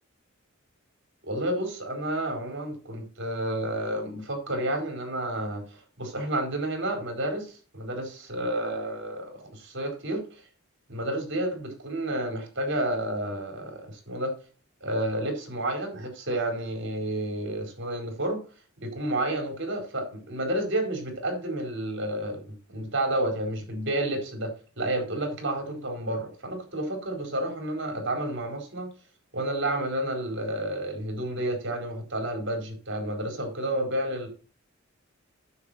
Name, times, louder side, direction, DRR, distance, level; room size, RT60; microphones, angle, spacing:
voice 1, 1.2-10.4 10.9-14.3 14.8-18.4 18.8-24.5 24.8-28.9 29.3-34.3, right 1 dB, 60° right, 4 dB, 4.6 m, -30 dB
9.6 x 7.6 x 4.3 m, 0.36 s
head